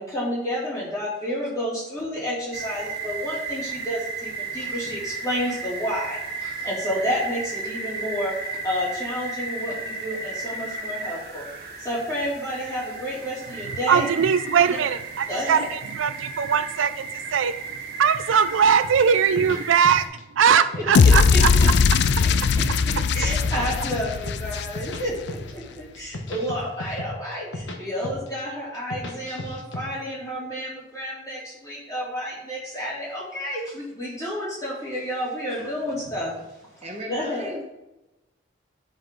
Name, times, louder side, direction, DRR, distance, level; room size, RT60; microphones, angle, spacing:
voice 1, 0.0-8.3 8.6-11.4 11.8-14.1 15.3-15.7 20.7-21.7 22.9-36.3 37.1-37.5, equal, 15° left, -7 dB, 2.8 m, -30 dB
sound 1, 2.5-20.1, right 4 dB, 50° right, 1.7 m, -34 dB
voice 2, 13.9-17.6 18.0-20.1 20.3-21.5 22.7-23.4, right 7 dB, 85° right, 12 dB, 0.4 m, -21 dB
sound 2, 18.8-20.2 20.5-21.7 21.9-22.9 23.2-25.0 25.3-25.6 25.9-27.8 28.0-28.4 28.7-29.8, left 1 dB, 80° left, 1.2 m, -35 dB
sound 3, 20.9-25.2, left 5 dB, 60° left, 0.3 m, -19 dB
voice 3, 36.8-37.6, right 1 dB, 35° right, 0 dB, 1.1 m, -36 dB
10.5 x 5.3 x 3.9 m, 0.97 s
head